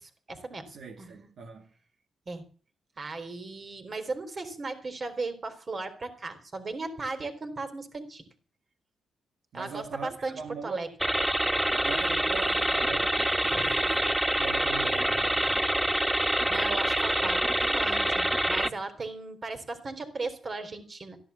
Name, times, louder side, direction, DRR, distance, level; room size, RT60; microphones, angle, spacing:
voice 1, 0.0-0.7 1.0-1.3 2.3-2.4 3.0-8.3 9.5-10.9 13.5-13.7 16.5-21.2, right 3 dB, 40° right, 4.0 m, -37 dB
voice 2, 0.7-1.7 9.5-10.9 11.7-15.6, right 5 dB, 70° right, 2.4 m, -41 dB
sound 1, 11.0-18.7, right 1 dB, 10° right, 0.9 m, -26 dB
15.0 x 11.0 x 7.2 m
cardioid pair, 85°, 0 cm